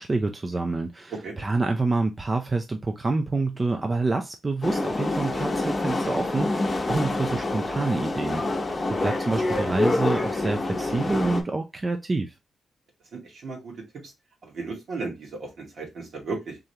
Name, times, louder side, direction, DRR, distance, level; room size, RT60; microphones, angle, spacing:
voice 1, 0.0-12.3, right 3 dB, 30° right, 0.5 m, -27 dB
sound 1, 4.6-11.4, left 2 dB, 30° left, 0.9 m, -27 dB
voice 2, 13.1-13.7 14.0-14.1 14.4-16.6, right 3 dB, 70° right, 1.9 m, -35 dB
3.7 x 3.3 x 2.8 m
cardioid pair, 95°, 0 cm